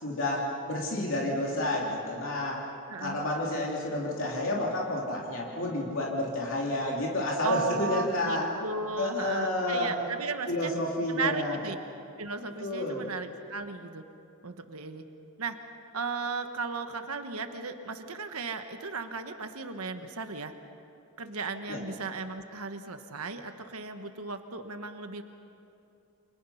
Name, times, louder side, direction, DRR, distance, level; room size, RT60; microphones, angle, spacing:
voice 1, 0.0-2.6 3.0-8.5 9.0-9.9 10.5-11.6 12.6-13.0 21.7-21.8, left 1 dB, 60° left, -3 dB, 3.2 m, -30 dB
voice 2, 2.9-3.3 7.4-10.7 11.1-11.8 12.2-14.0 14.4-15.0 15.4-15.6 15.9-20.5 21.2-25.2, right 4 dB, 80° right, 7 dB, 1.3 m, -35 dB
29.5 x 26.0 x 5.8 m, 2.7 s
head